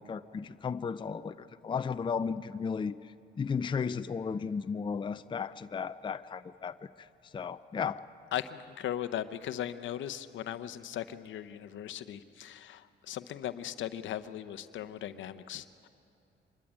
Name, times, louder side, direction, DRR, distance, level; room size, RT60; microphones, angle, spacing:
voice 1, 0.0-2.9 3.4-7.1 7.3-8.0, left 6 dB, 25° left, 12 dB, 0.5 m, -34 dB
voice 2, 8.3-15.9, left 11 dB, 75° left, 12 dB, 0.8 m, -38 dB
24.5 x 12.5 x 9.9 m, 2.6 s
cardioid pair, 90°, 20 cm